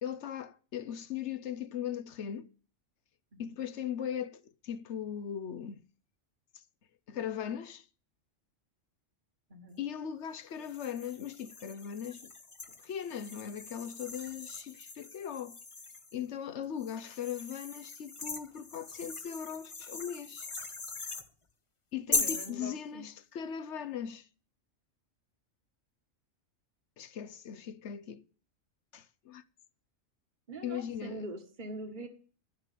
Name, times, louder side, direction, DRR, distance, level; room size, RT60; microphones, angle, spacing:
voice 1, 0.0-2.5 3.4-5.8 6.5-6.6 7.1-7.9 9.8-12.3 12.8-15.6 16.1-20.5 21.9-24.3 27.0-28.2 28.9-29.4 30.6-31.3, left 9 dB, 65° left, 1.1 m, -39 dB
voice 2, 9.5-9.8 22.1-23.1 30.5-32.1, right 1 dB, 40° right, 1.7 m, -43 dB
sound 1, 10.6-16.2 16.8-21.3 22.1-22.5, left 3 dB, 25° left, 0.9 m, -39 dB
12.0 x 6.8 x 9.1 m
omnidirectional pair, 1.3 m